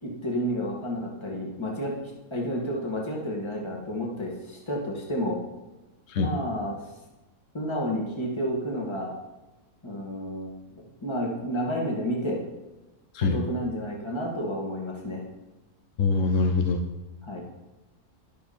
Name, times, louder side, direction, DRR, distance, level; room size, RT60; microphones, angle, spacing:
voice 1, 0.0-5.4 6.2-6.9 7.5-9.1 9.8-12.4 13.3-15.2 17.2-17.4, equal, 20° left, -2 dB, 2.3 m, -31 dB
voice 2, 16.0-16.8, left 4 dB, 70° left, 6 dB, 1.3 m, -23 dB
12.0 x 12.0 x 4.5 m, 1.1 s
omnidirectional pair, 1.4 m